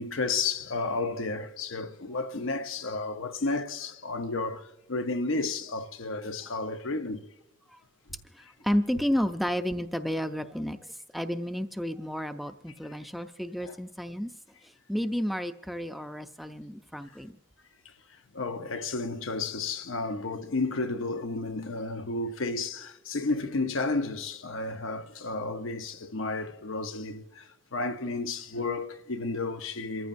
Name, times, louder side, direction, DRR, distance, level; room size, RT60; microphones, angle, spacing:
voice 1, 0.0-7.2 13.6-13.8 18.3-30.1, left 3 dB, 90° left, 0.9 m, -32 dB
voice 2, 8.3-14.3 14.6-17.4, equal, ahead, 0.4 m, -31 dB
27.5 x 14.5 x 2.6 m
head